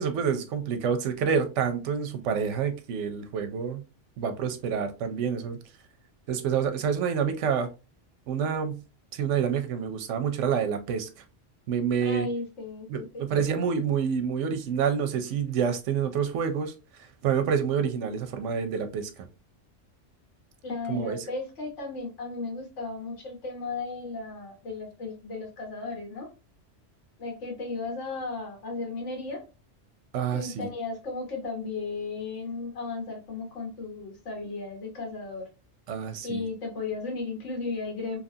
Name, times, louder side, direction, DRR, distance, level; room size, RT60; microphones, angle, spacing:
voice 1, 0.0-3.8 4.2-5.6 6.3-7.7 8.3-8.8 9.1-11.1 11.7-12.3 12.9-16.7 17.2-19.3 20.9-21.2 30.1-30.7 35.9-36.4, right 7 dB, 85° right, 0.9 m, -28 dB
voice 2, 12.0-13.2 20.6-26.3 27.2-29.4 30.3-35.5 36.2-38.2, left 3 dB, 80° left, 1.4 m, -35 dB
2.8 x 2.4 x 2.6 m
omnidirectional pair, 1.2 m